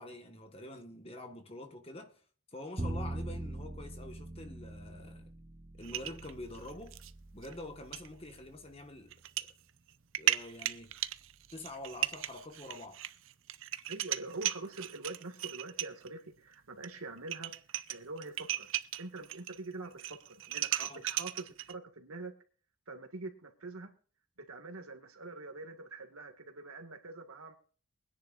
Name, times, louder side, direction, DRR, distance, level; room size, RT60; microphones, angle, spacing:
voice 1, 0.0-2.2 2.5-5.3 5.8-7.0 7.3-9.1 10.2-11.0 11.5-13.0 20.8-21.0, left 1 dB, 25° left, 1.5 m, -46 dB
Bowed string instrument, 2.8-9.0, right 1 dB, 25° right, 0.7 m, -43 dB
sound 1, 5.8-7.1 7.4-7.5 7.9-8.1 9.1-9.5 9.9-16.1 16.8-16.9 17.2-19.6 19.9-21.7, right 12 dB, 65° right, 0.6 m, -36 dB
voice 2, 13.9-17.5 17.9-18.7 19.0-22.3 22.9-23.9 24.4-27.5, right 3 dB, 85° right, 2.0 m, -44 dB
23.5 x 10.5 x 2.5 m
head